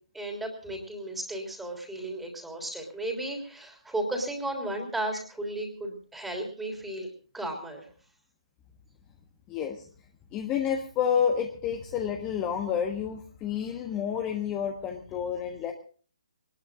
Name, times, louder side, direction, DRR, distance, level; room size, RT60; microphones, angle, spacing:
voice 1, 0.1-7.9, right 1 dB, 5° right, 2 dB, 3.3 m, -34 dB
voice 2, 9.5-9.9 10.3-15.7, left 8 dB, 20° left, 4 dB, 1.3 m, -29 dB
23.5 x 19.5 x 2.5 m, 0.40 s
figure-of-eight pair, 135°, 3 cm